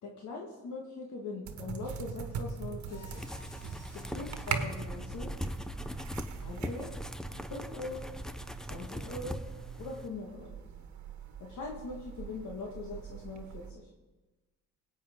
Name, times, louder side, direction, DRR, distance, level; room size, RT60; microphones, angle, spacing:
voice 1, 0.0-3.0 4.0-5.3 6.4-6.9 7.5-8.1 8.7-9.4 9.8-10.6 11.4-13.9, left 3 dB, 70° left, -1 dB, 1.7 m, -41 dB
sound 1, 1.4-13.7, right 6 dB, 70° right, 1.2 m, -42 dB
Mechanisms, 2.8-4.3, left 1 dB, 55° left, 2.6 m, -54 dB
sound 2, 3.1-10.1, equal, ahead, 0.6 m, -40 dB
17.5 x 8.6 x 3.7 m, 1.2 s
cardioid pair, 90°, 30 cm